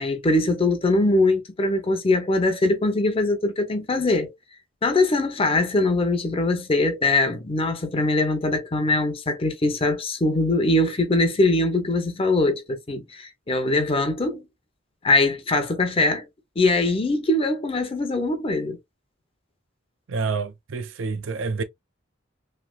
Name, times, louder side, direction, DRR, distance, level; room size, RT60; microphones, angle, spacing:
voice 1, 0.0-4.3 4.8-14.4 15.0-16.3 16.6-18.8, left 2 dB, 30° left, 0.6 m, -22 dB
voice 2, 20.1-21.6, right 4 dB, 80° right, 0.5 m, -28 dB
3.2 x 2.8 x 2.3 m
head